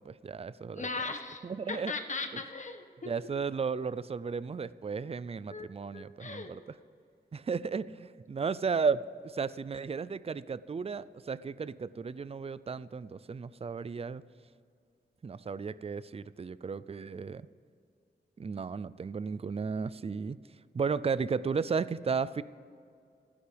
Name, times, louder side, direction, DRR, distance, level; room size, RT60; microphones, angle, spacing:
voice 1, 0.0-0.9 1.4-1.9 2.3-2.4 3.1-6.6 7.3-14.2 15.2-17.5 18.4-20.4 20.7-22.4, right 5 dB, 35° right, 17 dB, 0.5 m, -34 dB
voice 2, 0.7-3.2 5.5-5.7 5.9-6.5, left 3 dB, 45° left, 6 dB, 1.4 m, -38 dB
28.0 x 10.0 x 3.5 m, 2.4 s
cardioid pair, 70°, 17 cm